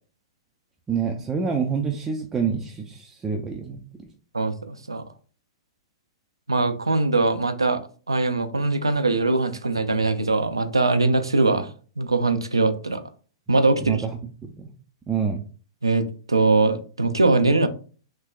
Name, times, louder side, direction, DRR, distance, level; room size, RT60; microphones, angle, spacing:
voice 1, 0.9-3.8 13.8-14.7 15.1-15.4, right 6 dB, 15° right, 3 dB, 0.4 m, -27 dB
voice 2, 4.3-5.0 6.5-7.8 8.1-11.7 12.0-13.0 13.5-14.0 15.8-17.7, right 3 dB, 85° right, 10 dB, 0.4 m, -21 dB
3.3 x 2.9 x 2.3 m, 0.40 s
figure-of-eight pair, 105°, 2 cm